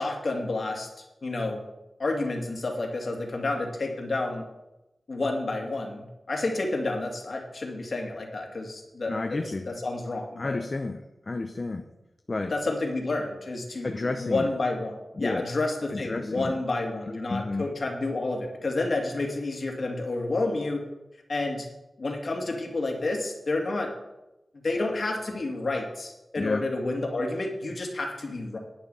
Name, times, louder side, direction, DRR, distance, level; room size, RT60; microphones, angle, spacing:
voice 1, 0.0-1.6 2.0-4.4 5.1-10.6 12.4-20.8 21.3-21.7 22.0-23.9 24.6-28.6, left 2 dB, 55° left, 2 dB, 2.4 m, -30 dB
voice 2, 9.1-9.7 10.4-11.9 12.3-12.5 13.8-14.5 15.2-15.5 15.9-16.6 17.1-17.7 26.4-26.7, left 3 dB, 40° left, 5 dB, 0.7 m, -31 dB
10.5 x 9.1 x 5.6 m, 0.97 s
wide cardioid pair, 85°, 0 cm